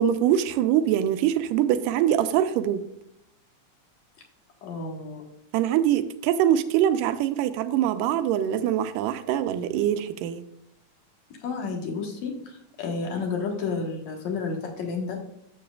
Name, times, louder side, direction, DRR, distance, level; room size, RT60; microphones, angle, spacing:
voice 1, 0.0-2.8 5.5-10.4, right 10 dB, 85° right, 10 dB, 2.2 m, -23 dB
voice 2, 4.6-5.2 11.4-15.2, left 4 dB, 65° left, 1 dB, 2.4 m, -31 dB
11.5 x 7.8 x 2.3 m, 0.77 s
omnidirectional pair, 3.8 m